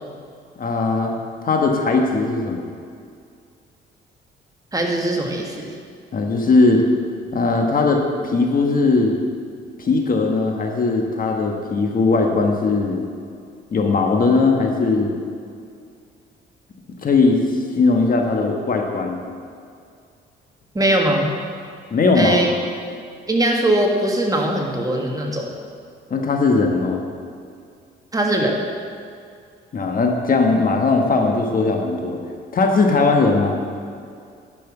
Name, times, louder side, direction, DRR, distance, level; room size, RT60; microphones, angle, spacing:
voice 1, 0.6-1.1 1.4-2.6 6.1-6.8 7.3-9.2 9.8-13.0 13.7-15.1 17.0-17.4 17.8-19.2 21.9-22.4 26.1-27.0 29.7-32.2 32.5-33.6, left 3 dB, 45° left, 2 dB, 1.3 m, -18 dB
voice 2, 4.7-5.7 20.8-21.3 22.2-22.5 23.3-25.5 28.1-28.6, right 1 dB, 20° right, 1 dB, 1.6 m, -20 dB
10.5 x 6.1 x 6.0 m, 2.3 s
cardioid pair, 90°, 20 cm